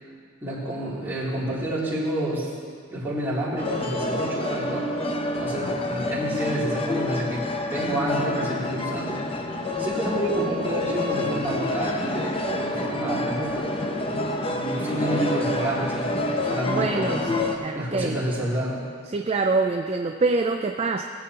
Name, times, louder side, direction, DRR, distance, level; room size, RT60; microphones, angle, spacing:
voice 1, 0.4-2.5 2.9-4.9 5.4-7.4 7.7-9.2 9.8-13.7 14.4-18.8, right 1 dB, 10° right, -10 dB, 2.9 m, -29 dB
sound 1, 3.6-17.6, left 2 dB, 25° left, 0.7 m, -28 dB
voice 2, 16.7-18.2 19.1-21.0, right 3 dB, 30° right, 4 dB, 0.3 m, -25 dB
18.5 x 8.4 x 2.9 m, 2.1 s
head